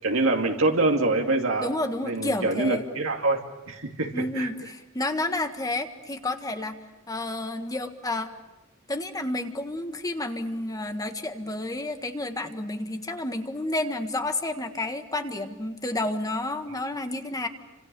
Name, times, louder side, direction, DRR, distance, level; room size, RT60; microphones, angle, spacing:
voice 1, 0.0-1.7 2.0-4.5, right 2 dB, 75° right, 2 dB, 2.5 m, -25 dB
voice 2, 1.6-2.9 4.1-6.8 7.1-8.3 8.9-17.5, left 2 dB, 20° left, 7 dB, 1.6 m, -30 dB
30.0 x 26.5 x 6.9 m, 0.98 s
head